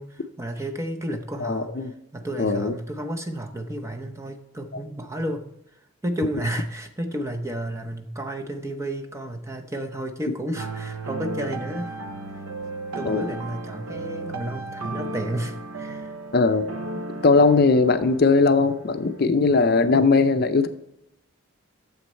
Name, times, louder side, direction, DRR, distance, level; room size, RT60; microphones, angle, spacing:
voice 1, 0.0-5.5 6.0-12.0 12.3-12.4 12.9-16.1, right 1 dB, 15° right, 4 dB, 0.7 m, -32 dB
voice 2, 1.4-1.9 2.4-2.7 13.1-13.2 16.3-16.7 17.2-20.7, left 4 dB, 45° left, 9 dB, 0.5 m, -19 dB
sound 1, 10.5-19.2, right 2 dB, 85° right, 0.7 m, -35 dB
9.5 x 7.0 x 4.3 m, 0.83 s
head